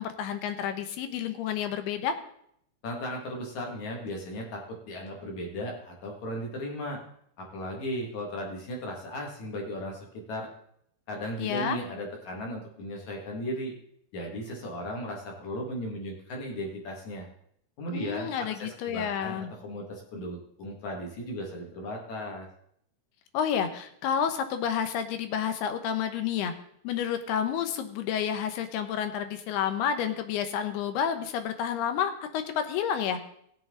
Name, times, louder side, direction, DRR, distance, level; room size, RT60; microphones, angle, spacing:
voice 1, 0.0-2.2 11.4-11.8 17.9-19.5 23.3-26.5 26.8-33.2, left 8 dB, 75° left, 9 dB, 2.8 m, -30 dB
voice 2, 2.8-7.0 7.4-10.5 11.1-13.7 14.1-17.3 17.8-22.5, equal, 50° left, 0 dB, 2.9 m, -36 dB
18.0 x 7.6 x 3.8 m, 0.69 s
omnidirectional pair, 4.8 m